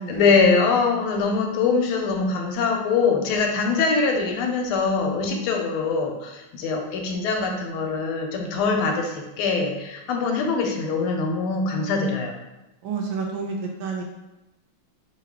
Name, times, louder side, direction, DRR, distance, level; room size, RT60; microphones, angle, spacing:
voice 1, 0.0-12.3, left 4 dB, 80° left, 2 dB, 1.4 m, -23 dB
voice 2, 12.8-14.0, right 5 dB, 75° right, 1 dB, 1.2 m, -29 dB
4.8 x 2.3 x 3.5 m, 1.0 s
omnidirectional pair, 2.4 m